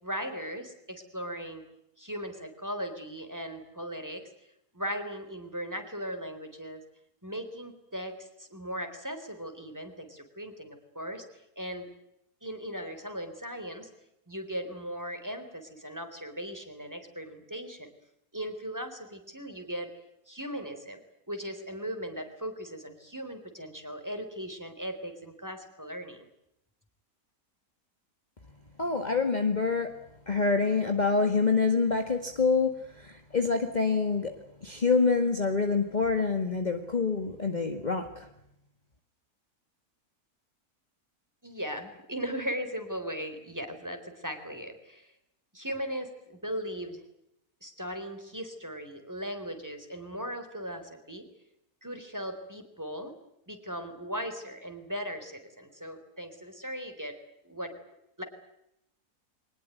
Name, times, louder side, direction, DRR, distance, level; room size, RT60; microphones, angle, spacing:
voice 1, 0.0-1.6 2.0-4.2 4.7-6.8 7.2-11.2 11.6-11.9 12.4-13.9 14.3-17.9 18.3-19.9 20.3-21.0 21.3-26.3 41.4-45.1 45.5-47.0 47.6-51.3 51.8-53.1 53.5-57.1 57.4-57.7 58.2-58.3, equal, 10° right, 7 dB, 4.2 m, -38 dB
voice 2, 28.8-29.9 30.3-34.3 34.6-38.3, left 4 dB, 30° left, 5 dB, 1.9 m, -26 dB
23.5 x 20.5 x 9.3 m, 0.81 s
omnidirectional pair, 1.6 m